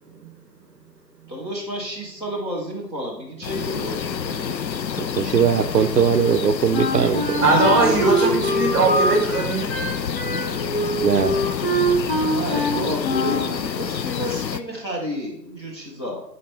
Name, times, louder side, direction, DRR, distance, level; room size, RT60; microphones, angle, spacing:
voice 1, 1.3-4.6 11.8-16.2, equal, 15° left, -8 dB, 0.9 m, -31 dB
sound 1, 3.4-14.6, left 7 dB, 85° left, 0.6 m, -28 dB
voice 2, 5.0-7.4 11.0-11.4, right 7 dB, 70° right, 11 dB, 0.6 m, -20 dB
Wind instrument woodwind instrument, 6.7-13.5, equal, 35° left, 1.2 m, -24 dB
voice 3, 7.4-9.8, right 3 dB, 15° right, 0 dB, 1.6 m, -20 dB
11.0 x 4.3 x 3.3 m, 0.75 s
figure-of-eight pair, 150°, 50 cm